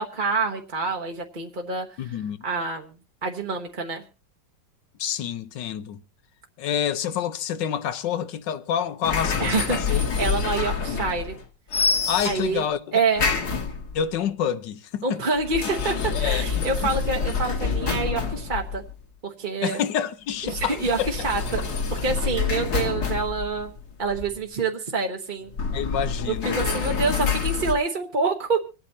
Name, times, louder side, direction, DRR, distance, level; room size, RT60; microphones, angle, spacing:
voice 1, 0.0-2.9 3.2-4.0 9.4-11.4 12.2-12.6 12.9-13.3 15.0-18.8 19.2-19.8 20.4-21.6 21.9-23.7 24.0-25.5 26.3-28.6, right 4 dB, 35° right, 1.0 m, -27 dB
voice 2, 2.0-2.4 5.0-6.0 6.6-10.0 12.1-12.8 13.9-15.0 16.1-16.9 19.6-21.1 25.7-26.6, left 9 dB, 80° left, 1.6 m, -28 dB
sound 1, 9.0-11.4 11.7-12.6 13.2-14.1 15.4-19.0 20.5-24.4 25.5-27.7, left 5 dB, 60° left, 2.1 m, -27 dB
26.0 x 8.8 x 2.8 m
omnidirectional pair, 1.9 m